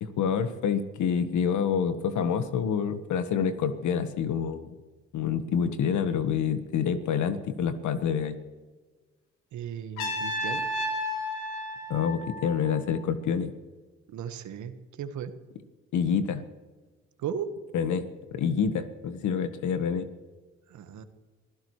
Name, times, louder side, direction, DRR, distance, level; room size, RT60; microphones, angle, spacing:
voice 1, 0.0-4.8 5.1-8.4 11.9-13.5 15.9-16.5 17.7-20.1, left 7 dB, 70° left, 11 dB, 1.5 m, -27 dB
voice 2, 9.5-10.7 14.1-15.3 17.2-17.5 20.7-21.0, right 8 dB, 70° right, 9 dB, 1.6 m, -36 dB
Trumpet, 10.0-13.0, left 1 dB, 85° left, 3.3 m, -32 dB
25.5 x 16.0 x 3.2 m, 1.3 s
hypercardioid pair, 45°, 31 cm